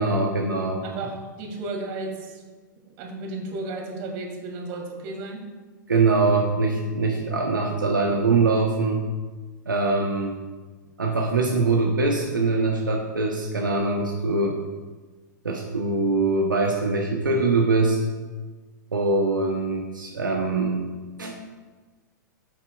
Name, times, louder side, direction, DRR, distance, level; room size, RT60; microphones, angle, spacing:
voice 1, 0.0-0.8 5.9-9.0 9.7-10.4 11.0-14.6 15.4-18.0 18.9-20.8 21.2-21.4, right 3 dB, 85° right, 0 dB, 0.9 m, -23 dB
voice 2, 0.8-2.4 3.0-5.4, right 2 dB, 45° right, 1 dB, 2.1 m, -33 dB
14.0 x 5.7 x 2.3 m, 1.3 s
hypercardioid pair, 105°, 10 cm